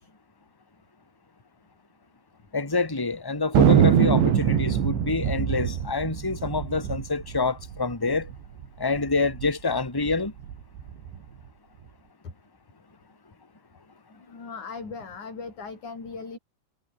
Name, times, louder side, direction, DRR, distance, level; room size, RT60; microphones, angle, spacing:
voice 1, 2.5-8.3 8.8-10.3, left 3 dB, 5° left, 2.4 m, -27 dB
Thunder, 3.6-8.4 8.6-8.7 8.9-9.5 10.0-11.2, right 9 dB, 70° right, 5.3 m, -23 dB
voice 2, 14.3-16.4, left 4 dB, 40° left, 7.8 m, -38 dB
omnidirectional pair, 5.6 m